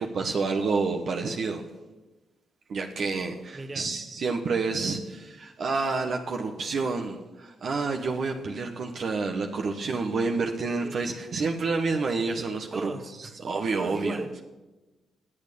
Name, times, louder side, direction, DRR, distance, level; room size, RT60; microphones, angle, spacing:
voice 1, 0.0-1.6 2.7-12.9 13.2-14.2, right 4 dB, 60° right, 3 dB, 1.3 m, -29 dB
voice 2, 3.5-3.9 9.8-9.9 10.7-11.0 12.7-13.4 13.8-14.4, right 2 dB, 35° right, 7 dB, 1.6 m, -37 dB
17.5 x 8.6 x 6.9 m, 1.1 s
supercardioid pair, 50°, 0 cm